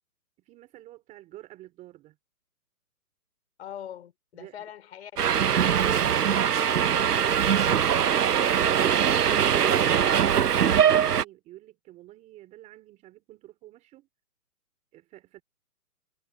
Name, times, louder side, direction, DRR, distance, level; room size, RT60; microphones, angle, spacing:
voice 1, 0.4-2.2 4.3-4.6 9.2-14.1 14.9-15.4, right 15 dB, 15° right, 3.2 m, -49 dB
voice 2, 3.6-5.1 5.5-5.7, left 10 dB, 45° left, 5.4 m, -42 dB
Subway metro underground, 5.2-11.2, right 8 dB, 80° right, 1.1 m, -22 dB
hypercardioid pair, 160°, 46 cm